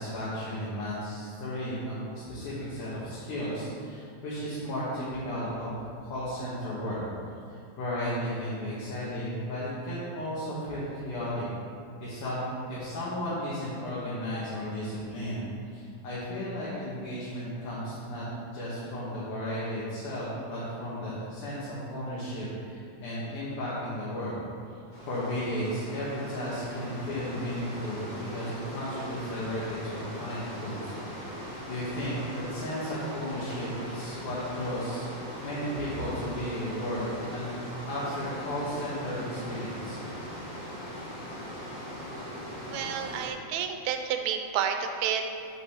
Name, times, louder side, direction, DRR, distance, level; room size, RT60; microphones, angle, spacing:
voice 1, 0.0-5.7 6.0-7.0 7.8-11.5 12.0-18.3 18.5-24.3 25.1-30.9 31.3-35.1 35.4-37.0 37.3-37.5 37.9-40.0, equal, 90° left, -9 dB, 3.1 m, -34 dB
sound 1, 24.9-43.3, equal, 20° left, 1.2 m, -40 dB
voice 2, 42.7-45.3, right 8 dB, 80° right, 6 dB, 1.9 m, -30 dB
6.7 x 5.6 x 6.6 m, 2.3 s
omnidirectional pair, 3.4 m